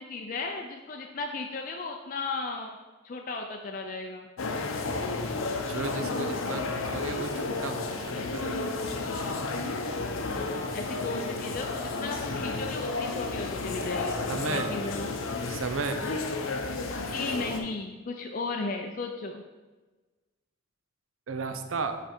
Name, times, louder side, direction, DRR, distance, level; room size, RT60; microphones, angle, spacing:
voice 1, 0.0-2.8 3.0-4.3 10.3-15.1 17.1-19.4, left 3 dB, 40° left, 2 dB, 0.4 m, -35 dB
sound 1, 4.4-17.6, left 3 dB, 85° left, 0.7 m, -32 dB
voice 2, 5.7-8.7 14.3-14.7 15.5-16.1 21.3-22.0, right 4 dB, 75° right, 7 dB, 0.6 m, -34 dB
5.6 x 5.0 x 4.4 m, 1.2 s
head